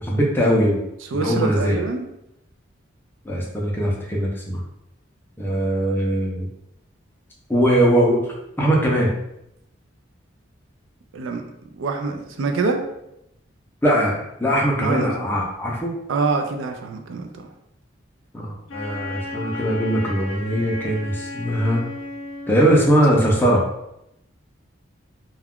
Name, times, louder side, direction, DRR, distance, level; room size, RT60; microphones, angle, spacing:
voice 1, 0.0-0.8 1.1-1.8 3.2-4.6 5.4-6.5 7.5-8.3 8.6-9.1 13.8-15.9 18.3-21.8 22.5-23.6, equal, 10° left, -3 dB, 0.5 m, -20 dB
voice 2, 1.1-2.0 11.1-11.4 11.7-12.8 14.8-15.5 16.1-17.5, right 4 dB, 80° right, 5 dB, 0.4 m, -25 dB
Wind instrument woodwind instrument, 18.7-23.1, left 2 dB, 85° left, 0.5 m, -34 dB
2.3 x 2.2 x 3.5 m, 0.82 s
head